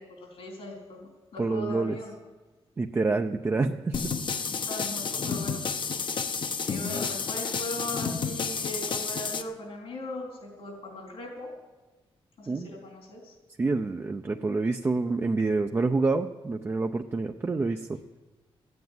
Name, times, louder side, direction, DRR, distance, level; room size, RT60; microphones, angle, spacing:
voice 1, 0.0-2.1 4.4-5.6 6.6-11.5 12.4-13.3, left 1 dB, 75° left, -1 dB, 3.9 m, -39 dB
voice 2, 1.4-2.0 2.8-4.0 12.5-12.7 13.6-17.9, right 3 dB, 25° right, 4 dB, 0.5 m, -27 dB
sound 1, 3.9-9.4, left 5 dB, 50° left, 0.8 m, -31 dB
14.5 x 9.5 x 9.4 m, 1.2 s
wide cardioid pair, 135°, 10 cm